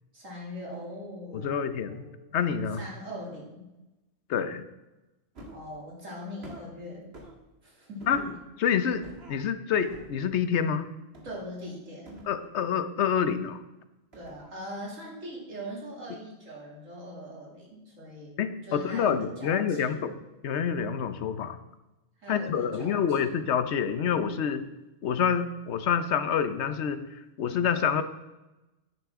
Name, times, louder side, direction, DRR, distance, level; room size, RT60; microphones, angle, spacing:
voice 1, 0.1-2.4 2.7-3.7 5.5-7.1 7.6-8.3 11.2-12.3 14.1-20.0 22.2-23.4, equal, 75° right, -3 dB, 3.1 m, -41 dB
voice 2, 1.3-2.0 2.3-2.8 4.3-4.6 8.1-8.2 8.6-9.0 9.3-10.9 12.3-13.6 18.4-20.1 20.4-21.6 22.3-24.6 25.0-28.0, left 7 dB, 60° left, 11 dB, 1.0 m, -27 dB
sound 1, 5.3-5.7 6.4-6.7 7.1-7.4 8.0-8.4 8.9-9.4 9.8-10.2 11.1-11.5 12.1-12.9 14.1-14.6 15.0-15.1, equal, 50° right, 1.8 m, -47 dB
10.5 x 8.9 x 3.6 m, 1.0 s
omnidirectional pair, 1.4 m